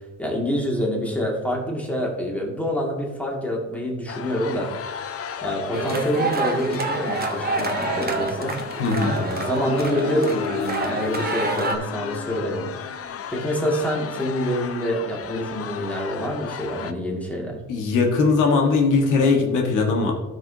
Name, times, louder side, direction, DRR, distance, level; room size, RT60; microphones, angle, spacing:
voice 1, 0.2-4.7 5.4-8.6 9.1-12.7 13.3-17.6, equal, 5° left, -1 dB, 2.2 m, -26 dB
sound 1, 4.1-16.9, left 8 dB, 50° left, 0.6 m, -33 dB
sound 2, 5.7-11.8, right 3 dB, 30° right, 1.1 m, -27 dB
voice 2, 8.8-9.2 17.7-20.1, left 4 dB, 90° left, 1 dB, 1.5 m, -20 dB
12.5 x 6.1 x 2.8 m, 1.2 s
cardioid pair, 90°, 30 cm